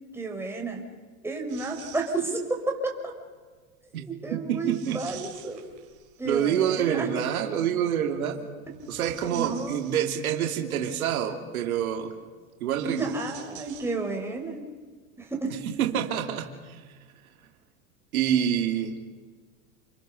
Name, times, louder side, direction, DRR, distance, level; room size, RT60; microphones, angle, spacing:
voice 1, 0.1-0.8 1.2-3.1 4.0-5.6 6.2-7.1 9.3-9.8 12.8-14.7 15.2-15.6, right 3 dB, 5° right, 1 dB, 4.8 m, -31 dB
sound 1, 1.5-2.6 4.6-6.4 8.6-10.4 12.7-14.4 14.7-14.8 15.8-15.9, right 12 dB, 45° right, 4.5 m, -48 dB
voice 2, 3.9-5.1 6.2-8.5 8.9-12.1 12.6-13.1 15.8-16.8 18.1-18.9, right 9 dB, 85° right, 3 dB, 3.1 m, -27 dB
29.5 x 23.0 x 6.7 m, 1.5 s
supercardioid pair, 125°, 42 cm